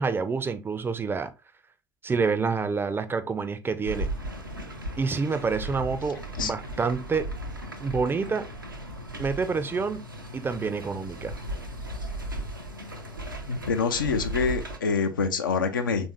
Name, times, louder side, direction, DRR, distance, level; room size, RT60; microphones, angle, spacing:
voice 1, 0.0-1.3 2.0-4.1 5.0-7.3 7.8-8.5 9.2-10.0 10.3-11.3, right 4 dB, 20° right, 0.4 m, -27 dB
sound 1, 3.8-14.8, right 1 dB, 90° right, 0.4 m, -36 dB
voice 2, 13.5-16.1, left 5 dB, 80° left, 0.4 m, -26 dB
3.4 x 2.6 x 3.2 m
figure-of-eight pair, 60°, 11 cm